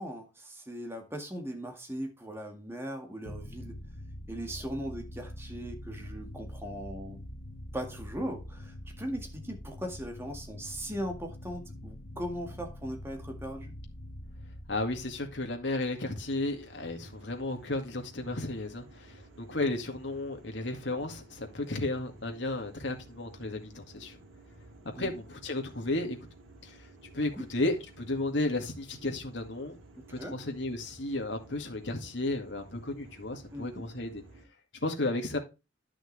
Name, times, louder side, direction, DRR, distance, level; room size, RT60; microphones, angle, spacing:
voice 1, 0.0-3.8 4.3-7.2 7.7-13.7 25.0-25.1 27.4-27.5 30.0-30.4 33.5-33.8, equal, 10° right, 1.9 m, -39 dB
sound 1, 3.3-16.7, left 1 dB, 85° left, 1.2 m, -45 dB
voice 2, 14.7-24.2 25.0-26.2 26.6-26.9 27.1-29.8 30.1-34.2 34.7-35.4, left 2 dB, 65° left, 2.2 m, -33 dB
sound 2, 15.9-34.5, right 2 dB, 80° right, 2.1 m, -54 dB
11.0 x 6.2 x 3.3 m
head